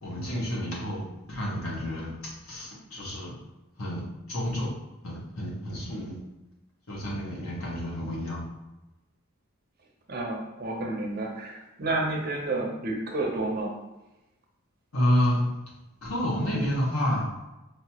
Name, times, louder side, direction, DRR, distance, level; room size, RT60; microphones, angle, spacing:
voice 1, 0.0-2.1 2.4-3.4 3.8-4.0 4.3-4.7 5.0-6.1 6.9-8.4 14.9-15.4 16.0-17.2, equal, 80° left, -4 dB, 1.4 m, -29 dB
voice 2, 10.1-13.7, right 2 dB, 45° right, 0 dB, 0.8 m, -30 dB
5.3 x 2.9 x 3.0 m, 1.0 s
head